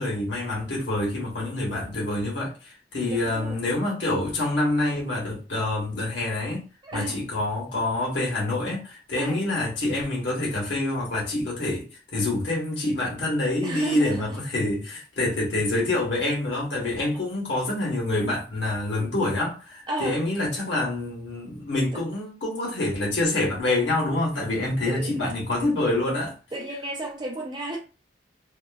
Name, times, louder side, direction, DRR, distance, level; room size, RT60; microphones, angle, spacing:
voice 1, 0.0-2.5 2.9-6.6 6.9-26.3, left 2 dB, 70° left, 1.3 m, -26 dB
voice 2, 3.0-3.6 6.8-7.2 9.2-9.4 13.6-14.4 17.0-17.1 19.9-20.2 21.9-22.0 24.8-25.3 26.5-27.8, right 1 dB, 25° right, 0.6 m, -34 dB
2.8 x 2.5 x 2.4 m
head